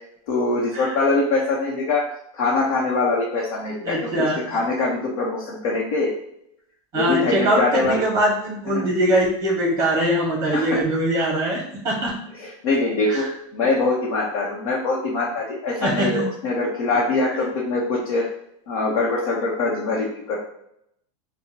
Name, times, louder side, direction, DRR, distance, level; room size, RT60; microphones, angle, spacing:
voice 1, 0.3-2.0 2.3-4.0 4.5-6.2 6.9-8.0 8.7-8.8 10.5-10.8 12.4-13.2 13.5-18.3 18.7-20.4, left 3 dB, 75° left, -4 dB, 1.3 m, -23 dB
voice 2, 3.8-4.6 6.9-12.1 13.1-13.2 15.8-16.3 17.3-17.5, right 1 dB, 15° right, -2 dB, 1.8 m, -22 dB
6.7 x 2.6 x 3.0 m, 0.74 s
supercardioid pair, 170°, 18 cm